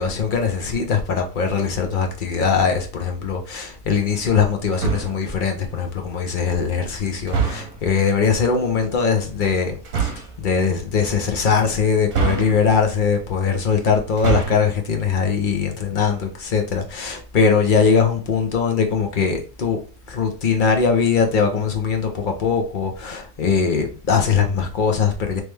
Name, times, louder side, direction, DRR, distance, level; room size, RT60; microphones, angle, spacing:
voice 1, 0.0-19.8 20.1-25.4, left 5 dB, 50° left, 0.6 m, -21 dB
sound 1, 4.7-5.3 7.3-7.9 9.8-10.4 12.1-12.9 14.1-14.8, right 6 dB, 65° right, 1.2 m, -24 dB
3.3 x 3.2 x 3.3 m
omnidirectional pair, 1.7 m